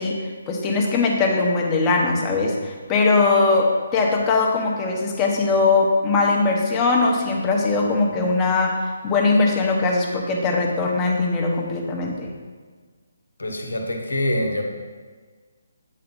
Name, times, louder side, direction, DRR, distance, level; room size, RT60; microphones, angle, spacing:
voice 1, 0.0-8.8 9.0-12.3, left 3 dB, 20° left, 0 dB, 0.9 m, -20 dB
voice 2, 13.4-14.6, left 1 dB, 80° left, 2 dB, 1.2 m, -25 dB
8.4 x 3.9 x 3.9 m, 1.5 s
figure-of-eight pair, 145°, 0 cm